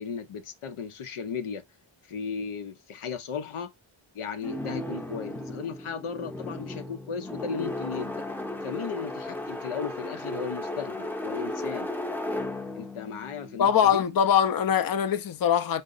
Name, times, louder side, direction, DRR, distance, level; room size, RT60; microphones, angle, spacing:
voice 1, 0.0-1.6 2.1-3.7 4.1-8.2 8.6-11.9 12.8-14.0, left 6 dB, 85° left, 0.7 m, -35 dB
sound 1, 4.4-14.4, left 1 dB, 5° left, 0.6 m, -35 dB
voice 2, 13.6-15.8, left 8 dB, 45° left, 0.5 m, -22 dB
3.7 x 2.1 x 3.7 m
cardioid pair, 45°, 49 cm